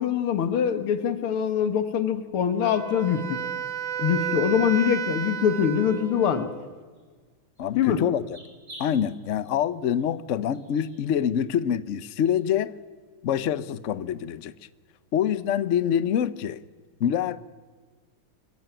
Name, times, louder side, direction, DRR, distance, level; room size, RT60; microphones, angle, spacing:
voice 1, 0.0-3.4 4.0-6.5 7.8-8.0, left 8 dB, 90° left, 2.3 m, -24 dB
Wind instrument woodwind instrument, 2.6-6.7, right 9 dB, 45° right, 1.2 m, -32 dB
sound 1, 6.0-6.3 6.9-7.0 7.6-7.8 8.1-8.9 9.3-9.5 10.0-10.1 10.5-11.0 11.4-11.5 12.0-12.3, right 1 dB, 75° right, 7.2 m, -48 dB
voice 2, 7.6-8.2 8.8-12.7 13.2-14.5 15.1-16.6 17.0-17.4, left 9 dB, 75° left, 0.7 m, -25 dB
26.0 x 15.0 x 9.0 m
omnidirectional pair, 2.3 m